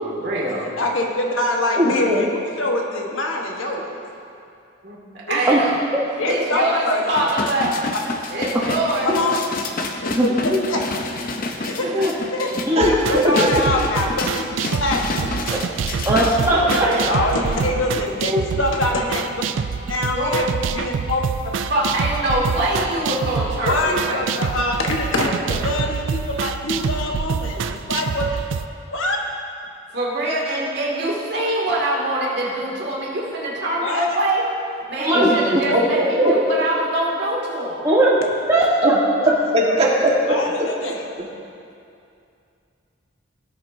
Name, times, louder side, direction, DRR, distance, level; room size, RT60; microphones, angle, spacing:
voice 1, 0.0-0.7 4.8-5.0 5.3-5.8 6.3-7.7 8.3-9.1 11.6-12.1 16.5-17.2 20.1-20.4 21.7-24.3 29.9-34.5 34.9-37.8, right 1 dB, 55° right, -5 dB, 2.3 m, -24 dB
voice 2, 0.8-4.0 5.3-5.4 6.2-7.0 9.0-9.4 10.0-10.8 11.6-11.9 12.3-12.5 12.8-15.3 17.0-19.4 19.9-20.5 20.7-21.2 23.6-28.3 28.9-29.2 33.8-34.1 35.7-35.8 36.2-36.4 40.3-41.0, left 2 dB, 80° left, 0 dB, 1.2 m, -24 dB
voice 3, 1.8-2.2 12.8-13.5 35.1-35.3 35.7-36.3 38.8-38.9 39.5-40.7, equal, 30° right, -3 dB, 1.5 m, -19 dB
sound 1, 7.1-17.1 17.5-17.6, left 3 dB, 45° left, 0.6 m, -29 dB
voice 4, 10.0-10.6 11.9-12.1 12.7-12.8 15.5-15.6 16.0-16.9 18.3-18.4 35.0-35.4 37.8-38.2 38.5-39.0, right 1 dB, 15° right, -6 dB, 0.9 m, -18 dB
sound 2, 12.8-28.7, right 6 dB, 70° right, 0.4 m, -26 dB
17.5 x 7.3 x 2.7 m, 2.5 s
head